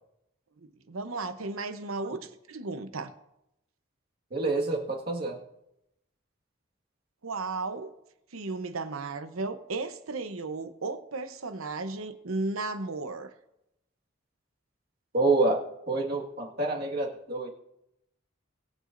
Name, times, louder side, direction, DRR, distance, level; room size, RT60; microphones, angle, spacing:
voice 1, 0.6-3.1 7.2-7.9 8.3-13.3, right 3 dB, 80° right, 10 dB, 0.9 m, -35 dB
voice 2, 4.3-5.4 15.1-17.5, right 3 dB, 45° right, -1 dB, 1.8 m, -27 dB
21.5 x 8.2 x 2.6 m, 0.85 s
head